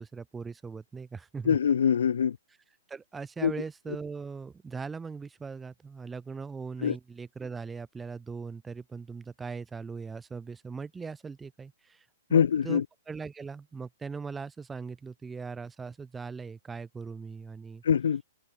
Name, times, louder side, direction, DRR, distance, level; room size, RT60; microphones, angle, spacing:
voice 1, 0.0-1.6 2.9-17.8, right 5 dB, 10° right, 5.7 m, -40 dB
voice 2, 1.5-2.4 3.4-3.5 6.8-6.9 12.3-12.8 17.9-18.2, left 7 dB, 80° left, 3.8 m, -23 dB
hypercardioid pair, 165°, 0 cm